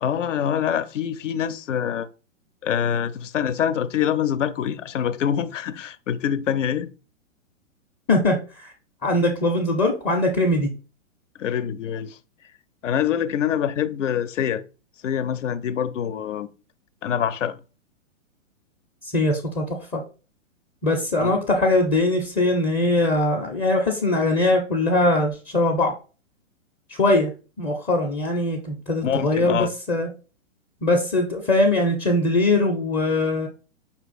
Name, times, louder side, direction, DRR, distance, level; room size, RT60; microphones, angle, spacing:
voice 1, 0.0-2.1 2.6-6.9 11.4-12.2 12.8-14.6 15.0-16.5 17.0-17.6 21.2-21.4 29.0-29.7, left 9 dB, 70° left, 0.6 m, -25 dB
voice 2, 8.1-8.7 9.0-10.7 19.0-19.6 19.9-20.0 20.8-25.9 27.0-27.3 27.6-30.1 30.8-33.5, left 2 dB, 15° left, 0.5 m, -21 dB
5.4 x 2.4 x 4.1 m
hypercardioid pair, 120°, 39 cm